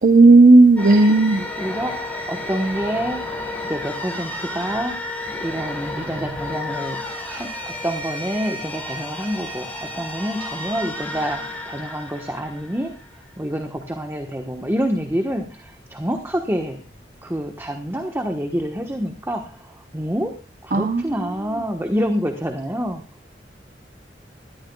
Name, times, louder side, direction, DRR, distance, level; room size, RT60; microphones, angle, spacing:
voice 1, 0.0-1.4 20.7-21.0, right 3 dB, 55° right, 8 dB, 0.7 m, -12 dB
sound 1, 0.8-13.3, left 1 dB, 10° left, 4.3 m, -32 dB
voice 2, 1.6-7.0 7.3-12.9 13.4-16.8 17.2-23.0, equal, 15° right, 5 dB, 1.1 m, -27 dB
20.5 x 13.5 x 2.3 m, 0.29 s
head